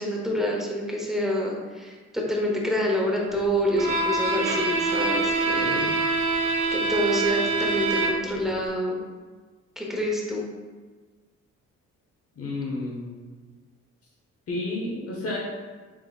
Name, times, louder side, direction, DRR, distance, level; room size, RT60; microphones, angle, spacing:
voice 1, 0.0-5.9 6.7-9.0 9.8-10.5, equal, ahead, -2 dB, 0.8 m, -27 dB
Bowed string instrument, 3.8-8.4, right 3 dB, 90° right, 0.7 m, -25 dB
voice 2, 12.3-13.0 14.5-15.4, left 2 dB, 50° left, -3 dB, 0.9 m, -31 dB
3.9 x 3.8 x 2.3 m, 1.4 s
cardioid pair, 90°, 30 cm